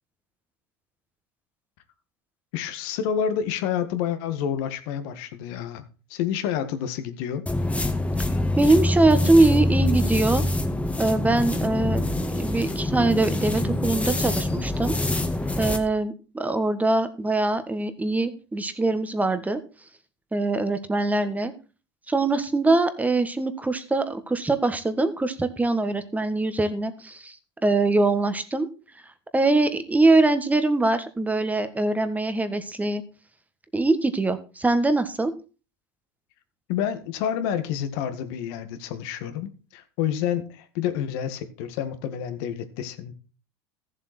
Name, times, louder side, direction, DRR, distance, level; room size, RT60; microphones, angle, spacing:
voice 1, 2.5-5.8 6.1-7.5 36.7-43.1, left 9 dB, 65° left, 1.9 m, -29 dB
sound 1, 7.5-15.8, left 1 dB, 10° left, 1.8 m, -25 dB
voice 2, 8.5-10.4 11.0-15.0 15.6-19.6 20.3-21.5 22.1-27.4 27.6-28.7 29.3-33.0 33.7-35.3, right 2 dB, 10° right, 1.5 m, -23 dB
14.5 x 7.5 x 4.4 m
hypercardioid pair, 95°, 14 cm